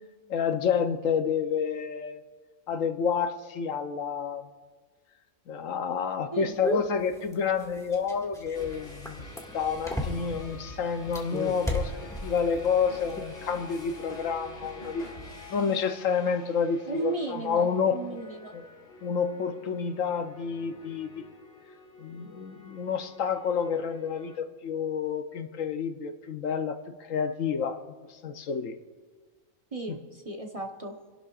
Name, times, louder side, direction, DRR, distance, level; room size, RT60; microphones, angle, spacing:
voice 1, 0.3-2.2 2.7-4.5 5.5-9.3 9.5-11.9 12.2-18.0 18.5-18.6 19.0-21.2 22.0-27.8 28.1-28.8 29.9-30.0, left 6 dB, 75° left, 8 dB, 1.1 m, -29 dB
voice 2, 6.3-6.8 16.8-18.5 29.7-30.9, right 3 dB, 30° right, 1 dB, 1.0 m, -35 dB
sound 1, 6.6-10.5 11.0-12.6 12.9-13.2, left 1 dB, ahead, 1.8 m, -33 dB
sound 2, 8.5-24.4, left 2 dB, 45° left, 2.2 m, -47 dB
29.5 x 11.5 x 2.4 m, 1.5 s
omnidirectional pair, 1.4 m